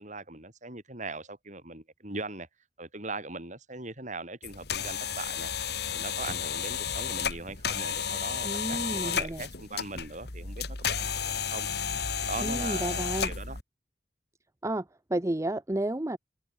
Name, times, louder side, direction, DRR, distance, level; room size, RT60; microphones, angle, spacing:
voice 1, 0.0-2.5 2.8-5.5 5.9-11.7 12.3-13.6, right 3 dB, 40° right, 7.5 m, -40 dB
sound 1, 4.4-13.6, left 7 dB, 60° left, 2.7 m, -32 dB
voice 2, 8.4-9.4 12.4-13.3 14.6-16.2, right 1 dB, 15° right, 0.7 m, -31 dB
head